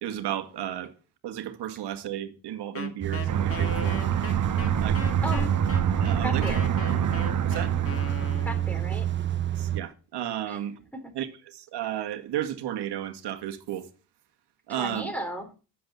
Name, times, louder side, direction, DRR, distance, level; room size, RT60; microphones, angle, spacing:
voice 1, 0.0-0.9 1.2-4.0 4.8-5.0 6.0-6.4 7.4-7.7 9.6-10.7 11.1-13.9 14.7-15.1, right 11 dB, 65° right, 2.0 m, -33 dB
Wind instrument woodwind instrument, 2.7-8.8, left 4 dB, 30° left, 2.3 m, -38 dB
sound 1, 3.0-9.8, right 11 dB, 25° right, 0.8 m, -28 dB
Aircraft, 3.3-9.4, right 7 dB, 45° right, 1.3 m, -28 dB
voice 2, 5.2-5.6 6.2-6.7 8.4-9.1 10.5-10.6 10.9-11.1 14.7-15.5, right 1 dB, 5° left, 3.9 m, -35 dB
11.5 x 7.8 x 6.9 m
cardioid pair, 90°, 44 cm